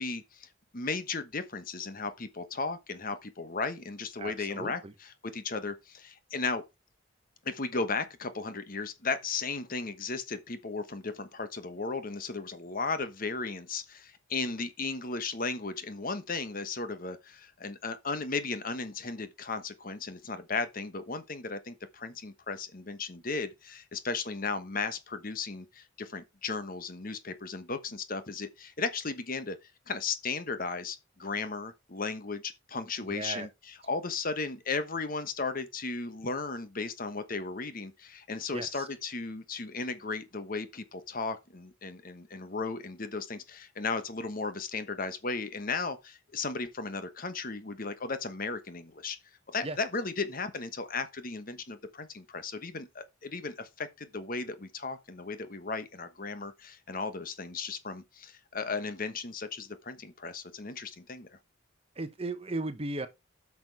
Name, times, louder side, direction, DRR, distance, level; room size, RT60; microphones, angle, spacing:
voice 1, 0.0-6.6 7.4-29.6 29.9-49.2 49.5-61.3, left 4 dB, 45° left, 1.2 m, -35 dB
voice 2, 4.2-4.9 33.1-33.5 38.5-38.8 49.6-49.8 62.0-63.1, right 2 dB, 30° right, 1.0 m, -36 dB
9.0 x 6.1 x 4.7 m
head